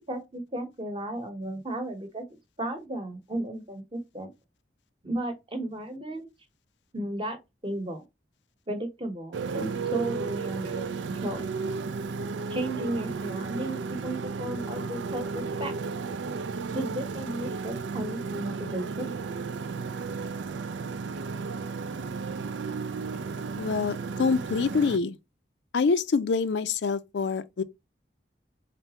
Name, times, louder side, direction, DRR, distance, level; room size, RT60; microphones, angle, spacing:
voice 1, 0.1-2.2 2.6-4.3 5.0-6.3 6.9-8.0 8.7-11.4 12.5-15.7 16.7-19.1, right 1 dB, 30° right, 0.9 m, -34 dB
Motorcycle, 9.3-25.0, right 4 dB, 90° right, 0.4 m, -34 dB
voice 2, 23.6-25.2 25.7-27.6, left 4 dB, 75° left, 0.4 m, -26 dB
4.0 x 3.4 x 2.8 m
head